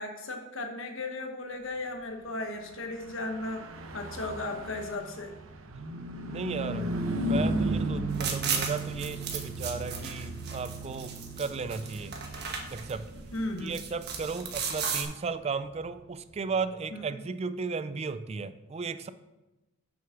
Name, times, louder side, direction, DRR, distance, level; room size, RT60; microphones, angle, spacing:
voice 1, 0.0-3.6 3.9-5.4 13.3-13.8 16.9-17.0, left 2 dB, 65° left, 4 dB, 1.2 m, -36 dB
Car passing by / Truck, 2.9-16.6, right 1 dB, 75° right, 0.9 m, -36 dB
voice 2, 6.3-11.1 11.4-12.1 12.7-13.1 13.6-19.1, right 4 dB, 30° right, 12 dB, 0.3 m, -35 dB
sound 1, 8.1-15.0, right 6 dB, 55° right, 1.2 m, -36 dB
7.2 x 6.2 x 5.9 m, 1.0 s
head